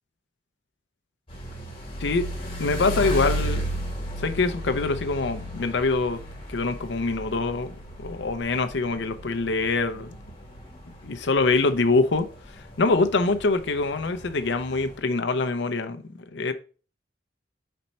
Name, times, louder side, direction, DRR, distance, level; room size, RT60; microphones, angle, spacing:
sound 1, 1.3-15.0, equal, 30° left, 1.7 m, -35 dB
voice 1, 2.6-3.7 4.2-6.2 6.5-7.7 8.0-10.2 11.0-12.3 12.5-16.0 16.3-16.5, left 3 dB, 60° left, 0.5 m, -24 dB
4.3 x 4.2 x 5.3 m
head